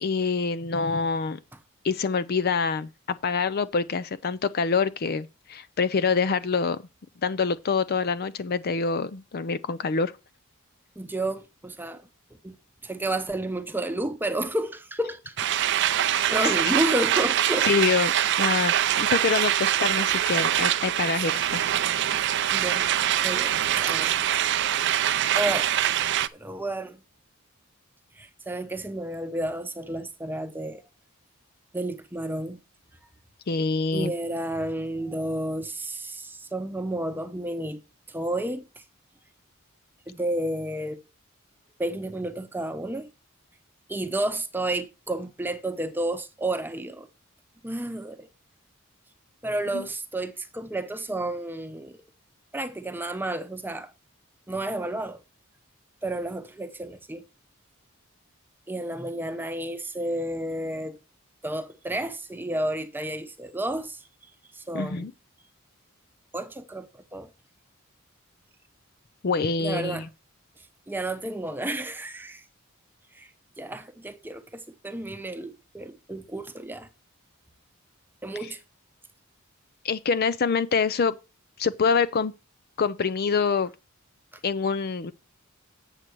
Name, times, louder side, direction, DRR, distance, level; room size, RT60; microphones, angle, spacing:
voice 1, 0.0-1.4 1.8-6.8 7.2-10.1 16.1-16.3 17.6-18.1 18.4-21.6 33.5-34.1 49.7-49.8 64.7-65.1 69.2-70.1 79.8-81.2 81.6-82.3 82.8-83.7 84.4-85.1, left 5 dB, 45° left, 0.4 m, -26 dB
voice 2, 11.0-12.0 12.4-12.6 12.8-15.7 16.3-17.7 21.2-21.3 22.5-22.9 23.2-24.2 25.3-25.7 26.3-27.0 28.2-30.8 31.7-32.6 33.9-37.8 38.1-38.6 40.1-41.0 41.8-43.1 43.9-47.1 47.6-48.3 49.4-52.0 52.5-53.9 54.5-55.2 56.0-57.2 58.7-61.0 61.4-64.0 64.5-65.1 66.3-67.3 69.6-70.0 70.9-72.4 73.1-73.3 73.6-76.9 78.2-78.6, right 1 dB, 10° right, 0.8 m, -31 dB
sound 1, 15.4-26.3, right 11 dB, 55° right, 0.5 m, -24 dB
8.1 x 7.4 x 4.6 m
head